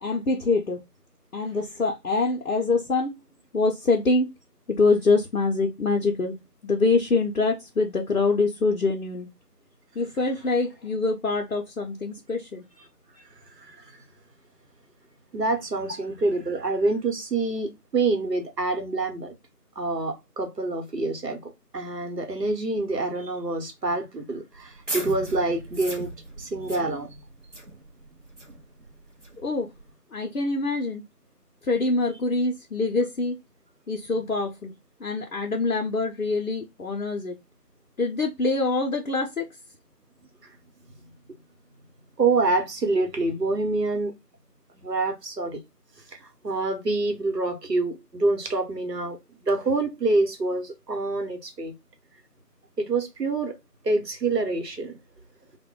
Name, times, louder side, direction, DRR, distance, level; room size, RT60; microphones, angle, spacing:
voice 1, 0.0-0.8 1.3-3.2 3.5-4.3 4.7-6.4 6.6-9.3 10.0-12.6 29.4-29.7 30.1-31.0 31.6-33.4 33.9-34.7 35.0-37.4 38.0-39.5, left 3 dB, 65° left, 0.6 m, -25 dB
voice 2, 13.6-13.9 15.3-19.3 19.8-26.1 26.4-27.2 42.2-44.1 44.7-45.6 46.1-51.7 52.8-53.6 53.8-55.0, right 3 dB, 85° right, 1.0 m, -26 dB
sound 1, 24.5-29.9, right 1 dB, 50° right, 0.7 m, -39 dB
2.1 x 2.1 x 3.5 m
figure-of-eight pair, 175°, 47 cm